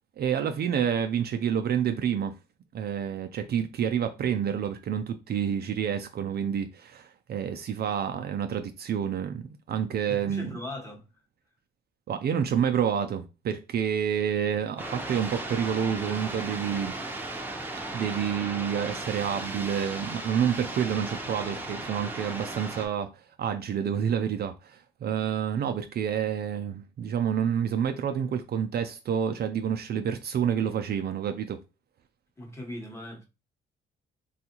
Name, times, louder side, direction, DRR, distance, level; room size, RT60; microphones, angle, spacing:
voice 1, 0.2-2.3 2.7-10.6 12.1-17.0 17.9-31.6, right 8 dB, 55° right, 0.4 m, -28 dB
voice 2, 10.1-11.0 32.4-33.3, left 1 dB, 15° left, 1.0 m, -39 dB
sound 1, 14.8-22.9, right 2 dB, 10° right, 0.7 m, -36 dB
3.4 x 2.3 x 2.9 m
cardioid pair, 90°, 20 cm